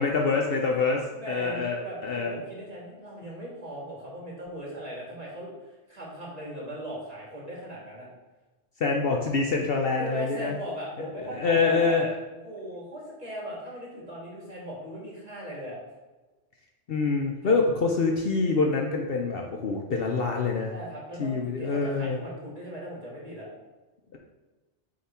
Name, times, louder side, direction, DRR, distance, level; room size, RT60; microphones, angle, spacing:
voice 1, 0.0-2.3 8.8-10.6 11.3-12.1 16.9-20.7 21.2-22.2, left 4 dB, 60° left, 1 dB, 0.8 m, -26 dB
voice 2, 1.1-8.1 10.0-12.0 12.4-15.8 20.7-23.5, equal, 35° right, -5 dB, 2.0 m, -39 dB
7.6 x 3.4 x 4.3 m, 1.2 s
omnidirectional pair, 1.2 m